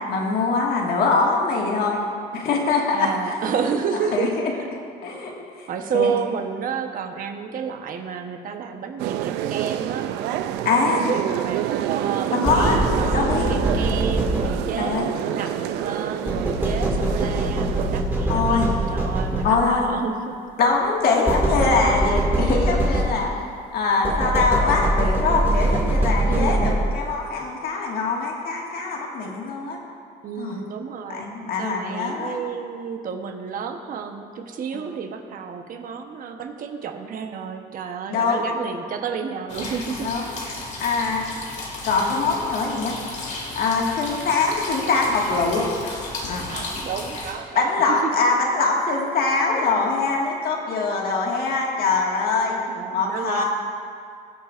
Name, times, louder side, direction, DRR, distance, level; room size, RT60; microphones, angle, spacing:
voice 1, 0.1-2.0 2.3-3.1 4.1-4.5 5.0-5.3 5.6-5.7 5.9-6.1 10.7-11.1 12.3-12.8 13.1-13.5 14.8-15.2 18.3-18.8 19.4-19.9 20.6-23.3 23.7-29.8 30.4-30.6 31.1-32.4 38.1-38.6 40.0-40.2 40.8-41.3 41.8-43.0 43.6-45.7 46.2-46.4 47.6-52.6 52.9-53.4, left 4 dB, 65° left, -1 dB, 1.8 m, -23 dB
voice 2, 2.9-4.6 5.7-10.1 10.8-20.4 26.3-26.7 29.2-29.3 30.2-31.3 31.6-40.4 46.5-48.1 52.6-53.4, right 6 dB, 55° right, 5 dB, 1.0 m, -30 dB
sound 1, 9.0-18.0, right 11 dB, 90° right, 0.4 m, -27 dB
sound 2, 12.4-14.9 16.3-19.8 21.3-23.5 24.0-27.1, right 1 dB, 10° right, 2.0 m, -23 dB
sound 3, 39.5-47.3, left 2 dB, 45° left, 2.0 m, -34 dB
21.5 x 7.2 x 2.5 m, 2.3 s
cardioid pair, 110°, 17 cm